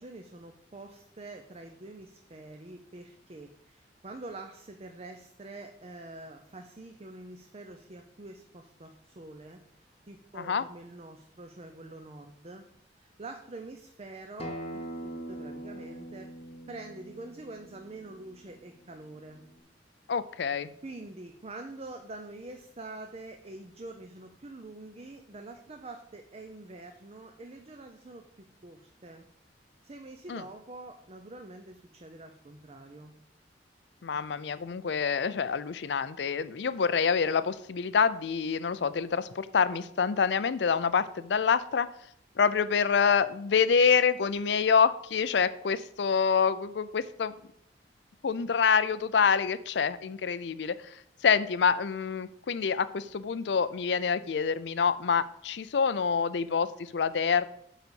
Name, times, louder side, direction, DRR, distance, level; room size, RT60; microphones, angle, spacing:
voice 1, 0.0-12.7 13.0-16.3 16.7-19.4 20.8-29.3 29.8-33.1, right 2 dB, 35° right, 5 dB, 0.6 m, -46 dB
Acoustic guitar, 14.4-19.6, right 1 dB, 35° left, 1.1 m, -43 dB
voice 2, 20.1-20.7 30.3-30.4 34.0-41.9 42.4-47.3 48.2-51.0 51.2-57.5, left 6 dB, 65° left, 14 dB, 0.5 m, -26 dB
9.1 x 4.1 x 6.9 m, 0.70 s
head